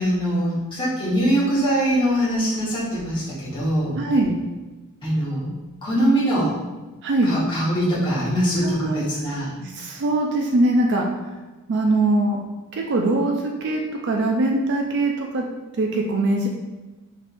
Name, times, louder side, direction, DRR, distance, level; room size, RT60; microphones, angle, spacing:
voice 1, 0.0-4.0 5.0-5.5 5.8-6.5 7.2-9.5, right 1 dB, 20° left, -9 dB, 1.4 m, -22 dB
voice 2, 3.9-4.4 7.0-7.3 8.6-9.0 9.6-11.1 11.7-12.4 12.7-15.4 15.8-16.5, right 2 dB, 50° right, 1 dB, 0.4 m, -22 dB
4.2 x 3.4 x 2.6 m, 1.2 s
head